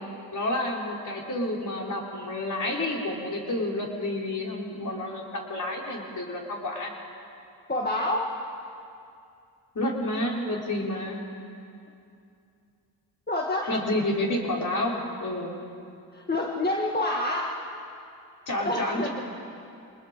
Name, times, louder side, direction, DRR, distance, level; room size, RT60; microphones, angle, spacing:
voice 1, 0.3-6.9 9.7-11.2 13.7-15.5 18.5-19.1, left 1 dB, 45° left, -2 dB, 4.7 m, -29 dB
voice 2, 7.7-8.3 13.3-13.7 16.1-17.5 18.6-19.1, left 1 dB, 25° left, -1 dB, 2.0 m, -27 dB
25.0 x 20.5 x 5.2 m, 2.5 s
cardioid pair, 60°, 41 cm